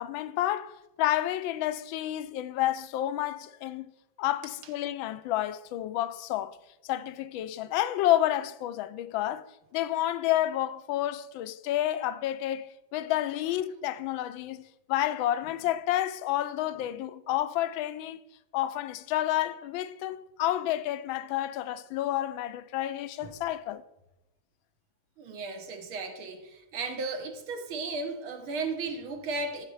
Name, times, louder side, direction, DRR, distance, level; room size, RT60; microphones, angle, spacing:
voice 1, 0.0-3.9 4.2-6.6 6.8-9.4 9.7-14.6 14.9-18.2 18.5-23.8, left 13 dB, 75° left, 1.3 m, -30 dB
voice 2, 25.2-29.7, right 3 dB, 75° right, 2.2 m, -35 dB
13.5 x 6.5 x 4.8 m
omnidirectional pair, 2.4 m